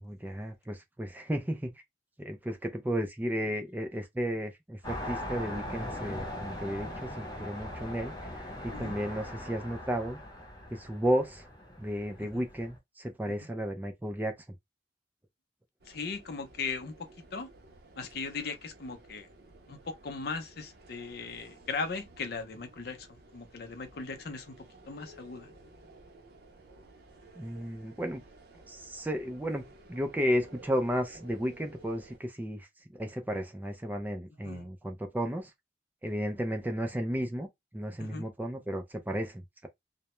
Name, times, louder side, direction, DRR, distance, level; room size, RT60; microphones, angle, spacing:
voice 1, 0.0-1.8 2.2-10.2 10.7-11.5 11.8-14.3 27.4-28.2 28.7-32.7 32.9-35.5 36.0-39.7, equal, 10° right, 0.3 m, -33 dB
sound 1, 4.8-12.8, left 1 dB, 20° left, 0.8 m, -40 dB
sound 2, 15.8-32.2, right 2 dB, 60° right, 0.6 m, -55 dB
voice 2, 15.9-16.9 17.3-17.5 18.0-19.3 19.7-24.6 24.9-25.5 34.4-34.7 38.0-38.2, left 4 dB, 55° left, 0.5 m, -38 dB
2.2 x 2.0 x 2.9 m
head